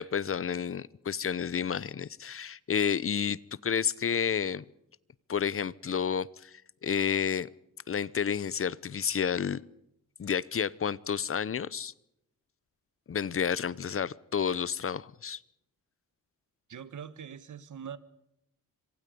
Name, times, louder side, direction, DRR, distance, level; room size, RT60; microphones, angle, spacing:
voice 1, 0.0-4.6 5.3-7.5 7.9-9.6 10.2-11.9 13.1-15.4, left 7 dB, 40° left, 0.8 m, -30 dB
voice 2, 16.7-18.0, right 8 dB, 60° right, 1.7 m, -42 dB
27.0 x 25.0 x 5.3 m
wide cardioid pair, 120°, 35 cm